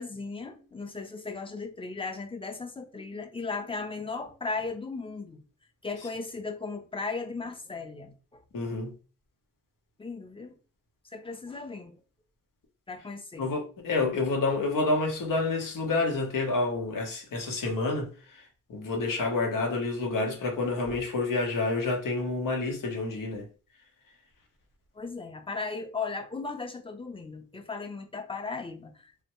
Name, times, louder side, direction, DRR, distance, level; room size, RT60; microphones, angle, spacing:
voice 1, 0.0-5.4 5.8-8.4 10.0-10.6 11.1-11.9 12.9-13.5 20.9-21.0 25.0-29.1, left 4 dB, 15° left, 0.7 m, -36 dB
voice 2, 8.5-8.9 13.4-23.5, left 3 dB, 80° left, 1.1 m, -29 dB
3.3 x 2.1 x 3.0 m
cardioid pair, 50°, 32 cm